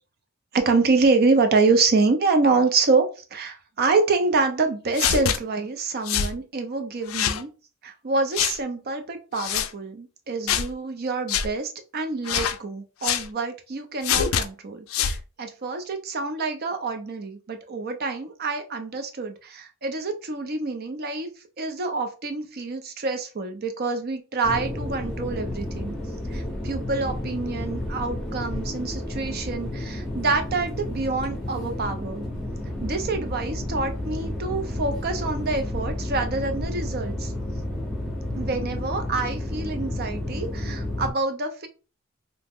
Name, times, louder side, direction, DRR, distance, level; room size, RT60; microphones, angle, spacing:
voice 1, 0.5-3.1 3.3-7.5 7.8-21.3 21.6-25.9 26.3-32.3 32.8-37.3 38.3-41.7, right 3 dB, 50° right, 6 dB, 0.5 m, -26 dB
sound 1, 4.9-5.4 6.1-6.3 7.1-7.4 8.3-8.6 9.4-9.7 10.5-10.7 11.3-11.5 12.2-12.6 13.0-13.3 14.0-14.4 14.9-15.2, left 8 dB, 70° left, 0.3 m, -24 dB
sound 2, 24.4-41.1, left 1 dB, ahead, 0.8 m, -31 dB
2.8 x 2.1 x 3.5 m, 0.33 s
head